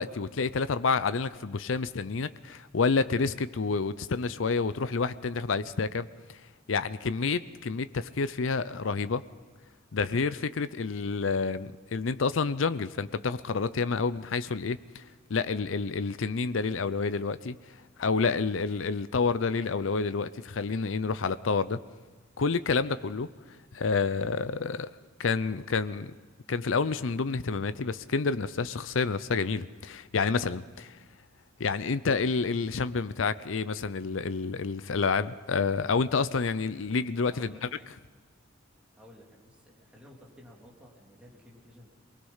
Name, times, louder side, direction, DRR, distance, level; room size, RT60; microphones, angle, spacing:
voice 1, 0.0-6.4 6.7-9.2 9.9-15.0 15.3-17.6 18.0-21.8 22.4-23.3 23.7-24.9 25.2-26.1 26.5-31.0 31.6-37.7, left 4 dB, 80° left, 0.6 m, -29 dB
voice 2, 37.3-37.8 38.9-41.9, equal, 5° right, 3.2 m, -53 dB
24.0 x 19.5 x 5.6 m
head